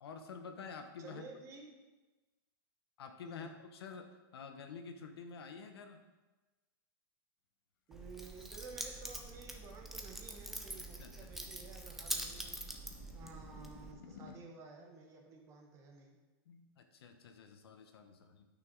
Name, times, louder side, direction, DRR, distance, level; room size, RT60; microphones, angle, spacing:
voice 1, 0.0-1.2 3.0-6.0 10.8-11.3 16.5-18.5, left 5 dB, 85° left, 6 dB, 1.1 m, -49 dB
voice 2, 1.0-1.8 3.3-3.5 7.9-12.7 13.1-16.2, right 4 dB, 25° right, 2 dB, 1.2 m, -53 dB
sound 1, 7.9-14.4, left 7 dB, 65° left, 1.0 m, -59 dB
Keys jangling, 7.9-13.9, right 1 dB, ahead, 0.6 m, -44 dB
9.1 x 6.1 x 4.7 m, 1.2 s
supercardioid pair, 160°, 13 cm